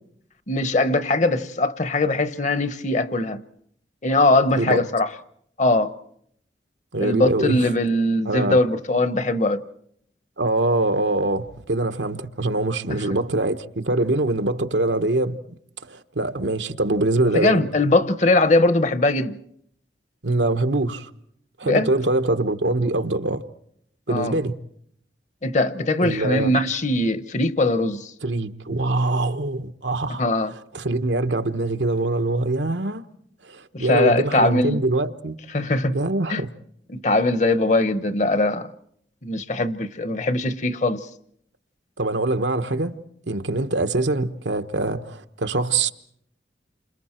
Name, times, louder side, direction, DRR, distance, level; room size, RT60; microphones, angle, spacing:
voice 1, 0.5-3.4 4.0-5.1 5.6-5.9 7.0-9.6 17.3-19.4 21.6-21.9 24.1-24.4 25.4-28.1 30.2-30.5 33.7-34.8 35.5-36.0 36.3-36.4 36.9-38.7 39.2-41.0, left 2 dB, 40° left, 1.0 m, -21 dB
voice 2, 6.9-7.7 8.2-8.6 10.4-15.4 15.8-17.6 20.2-21.1 21.6-23.4 24.1-24.6 26.0-26.6 28.2-30.2 30.7-33.0 33.4-35.3 35.9-36.5 42.0-43.0 43.3-45.9, right 2 dB, 80° right, 1.3 m, -23 dB
29.5 x 27.0 x 4.5 m
head